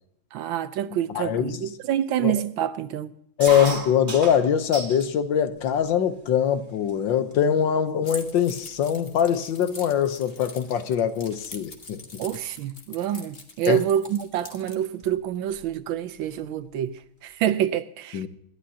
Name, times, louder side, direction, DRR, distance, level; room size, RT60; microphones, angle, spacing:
voice 1, 0.3-3.1 12.2-18.2, right 10 dB, 75° right, 1.4 m, -27 dB
voice 2, 1.1-1.6 2.2-2.4 3.4-12.0 13.7-13.8 18.1-18.3, left 8 dB, 70° left, 1.6 m, -23 dB
sound 1, 3.4-5.1 5.6-6.2 6.9-7.0 7.2-7.6 8.3-8.4 8.6-10.8 11.1-11.4 12.8-13.0 14.1-14.2 14.4-14.5 14.8-15.7, right 3 dB, 25° right, 1.6 m, -36 dB
Keys jangling, 8.0-14.8, left 3 dB, 30° left, 1.4 m, -43 dB
26.5 x 12.0 x 2.8 m
omnidirectional pair, 2.2 m